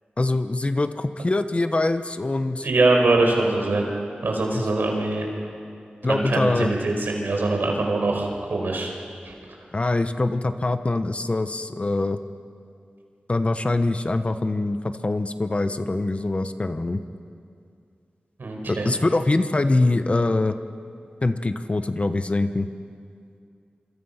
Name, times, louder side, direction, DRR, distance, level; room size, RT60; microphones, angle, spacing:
voice 1, 0.2-2.7 4.5-4.7 6.0-6.7 9.7-12.2 13.3-17.0 18.7-20.6 21.2-22.7, left 2 dB, 35° left, 9 dB, 1.1 m, -23 dB
voice 2, 2.6-3.8 4.2-5.3 6.1-8.9 18.4-18.9, right 2 dB, 80° right, 1 dB, 4.9 m, -23 dB
26.5 x 26.0 x 5.8 m, 2.4 s
wide cardioid pair, 70°, 3 cm